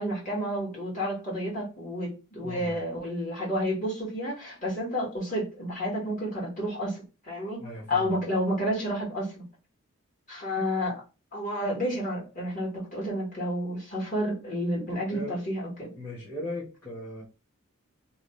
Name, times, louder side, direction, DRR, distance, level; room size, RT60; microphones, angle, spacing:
voice 1, 0.0-7.6 7.9-9.4 10.3-11.0 11.3-15.9, equal, 35° left, 1.7 m, -30 dB
voice 2, 2.4-2.8 7.6-8.1 15.1-15.4 15.9-17.2, left 1 dB, 10° left, 1.1 m, -38 dB
3.0 x 2.3 x 3.1 m
head